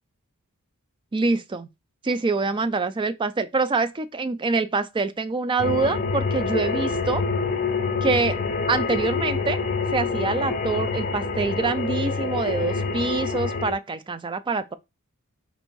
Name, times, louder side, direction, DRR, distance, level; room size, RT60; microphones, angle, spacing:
voice 1, 1.1-1.7 2.0-7.2 8.0-8.4 8.7-9.6 9.9-14.7, right 3 dB, 20° right, 0.3 m, -25 dB
sound 1, 5.6-13.7, left 4 dB, 40° left, 0.5 m, -26 dB
4.4 x 2.6 x 4.4 m
head